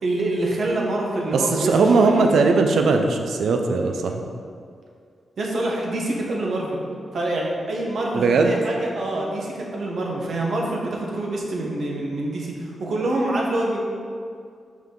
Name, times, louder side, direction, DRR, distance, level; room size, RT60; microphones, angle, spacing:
voice 1, 0.0-2.3 5.4-6.8 7.1-13.8, right 1 dB, 65° right, -2 dB, 1.1 m, -26 dB
voice 2, 1.3-4.2 8.1-8.6, right 4 dB, 80° right, 4 dB, 0.5 m, -19 dB
5.6 x 4.7 x 3.8 m, 2.2 s
cardioid pair, 85°, 0 cm